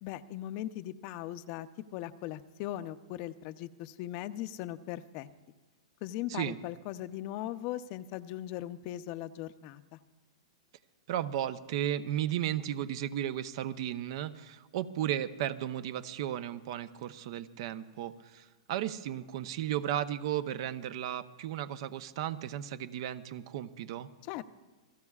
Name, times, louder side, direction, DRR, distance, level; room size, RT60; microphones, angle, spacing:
voice 1, 0.0-1.7 1.9-5.3 6.0-10.0 24.2-24.4, left 13 dB, 45° left, 12 dB, 0.7 m, -39 dB
voice 2, 11.1-24.1, right 11 dB, 55° right, 12 dB, 0.8 m, -34 dB
28.0 x 17.0 x 2.4 m, 1.3 s
hypercardioid pair, 130°, 3 cm